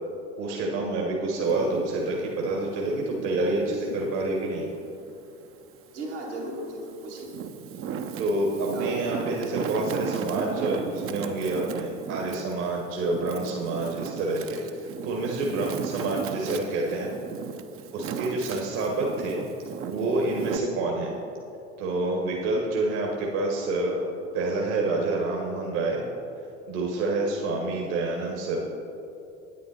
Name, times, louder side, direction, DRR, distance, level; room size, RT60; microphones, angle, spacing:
voice 1, 0.4-4.7 8.2-17.1 17.9-19.4 19.9-21.1 21.8-24.1 24.3-26.0 26.7-28.6, right 2 dB, 60° right, -1 dB, 1.5 m, -28 dB
Wind, 1.4-4.2 4.7-6.0 6.6-20.6, right 7 dB, 40° right, 0.7 m, -36 dB
voice 2, 5.9-7.3 8.7-9.1 16.0-16.4 16.7-17.1, right 1 dB, 85° right, -5 dB, 2.2 m, -37 dB
9.3 x 9.1 x 4.2 m, 2.7 s
figure-of-eight pair, 65°, 34 cm